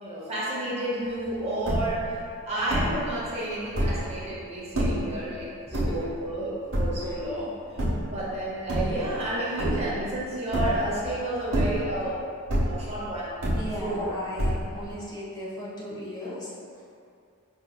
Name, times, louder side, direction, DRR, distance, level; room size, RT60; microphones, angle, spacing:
voice 1, 0.0-7.8 8.1-12.2 12.6-13.3 13.8-14.1, right 1 dB, 30° right, -6 dB, 0.6 m, -31 dB
sound 1, 1.2-1.3 1.5-2.1 2.7-3.1 3.6-4.1 4.7-5.1 5.7-6.3 6.7-7.2 7.8-8.2 8.6-9.3 9.6-10.1 10.5-11.0 11.4-12.1 12.5-13.0 13.4-14.0 14.4-14.9, equal, 65° right, 0.9 m, -27 dB
voice 2, 13.6-16.5, equal, 20° left, -8 dB, 0.6 m, -36 dB
4.7 x 2.6 x 2.2 m, 2.4 s
head